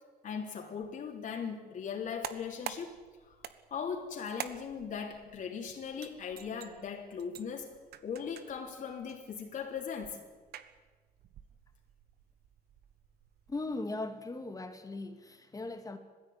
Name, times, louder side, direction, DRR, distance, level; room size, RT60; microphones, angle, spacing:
voice 1, 0.2-3.0 3.3-3.4 3.7-10.2, left 6 dB, 50° left, 3.5 m, -39 dB
sound 1, 2.0-13.8, right 10 dB, 70° right, 1.5 m, -49 dB
voice 2, 13.5-16.0, left 2 dB, 20° left, 2.2 m, -38 dB
20.0 x 16.0 x 9.7 m
cardioid pair, 110°, 17 cm